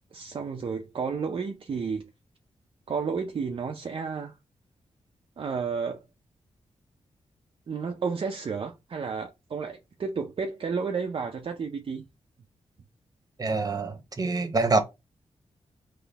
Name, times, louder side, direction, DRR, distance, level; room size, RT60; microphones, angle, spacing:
voice 1, 0.1-2.1 2.9-4.4 5.4-6.0 7.7-12.1, right 5 dB, 50° right, 0.5 m, -32 dB
voice 2, 13.4-14.8, right 3 dB, 30° right, 0.9 m, -25 dB
4.0 x 3.0 x 3.4 m
wide cardioid pair, 100°, 12 cm